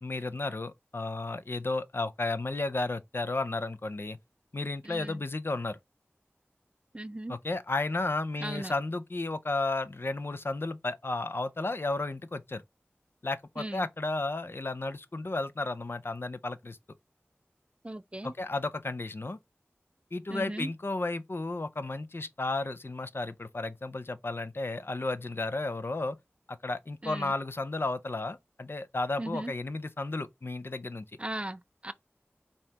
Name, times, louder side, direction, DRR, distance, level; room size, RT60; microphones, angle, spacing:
voice 1, 0.0-4.2 4.5-5.8 7.3-12.6 13.2-16.8 18.2-19.4 20.1-26.2 26.5-31.1, left 2 dB, 55° left, 0.5 m, -33 dB
voice 2, 6.9-7.3 8.4-8.7 13.6-13.8 17.8-18.3 20.3-20.7 27.0-27.3 29.2-29.5 31.2-31.9, right 1 dB, 25° right, 0.4 m, -37 dB
5.3 x 2.9 x 3.2 m
wide cardioid pair, 50°, 5 cm